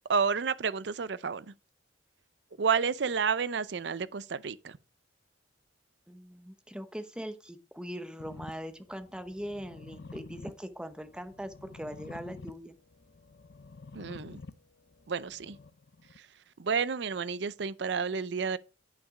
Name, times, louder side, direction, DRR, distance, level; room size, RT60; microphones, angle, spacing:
voice 1, 0.1-1.5 2.6-4.8 13.9-14.4 15.1-15.6 16.6-18.6, right 6 dB, 65° right, 0.5 m, -30 dB
voice 2, 6.1-12.7, equal, 5° right, 0.8 m, -41 dB
sound 1, 8.2-16.2, left 3 dB, 60° left, 0.6 m, -50 dB
8.7 x 5.9 x 4.8 m
head